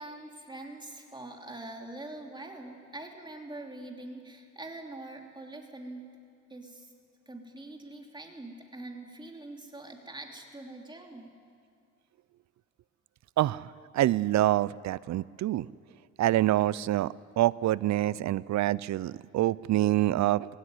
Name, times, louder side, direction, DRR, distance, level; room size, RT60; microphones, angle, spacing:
voice 1, 0.0-6.1 6.5-6.9 7.3-11.3, right 2 dB, 15° right, 2 dB, 3.1 m, -44 dB
voice 2, 13.9-15.7 16.2-17.1 17.4-20.5, right 14 dB, 65° right, 21 dB, 0.5 m, -26 dB
20.0 x 17.0 x 9.7 m, 2.4 s
cardioid pair, 90°, 30 cm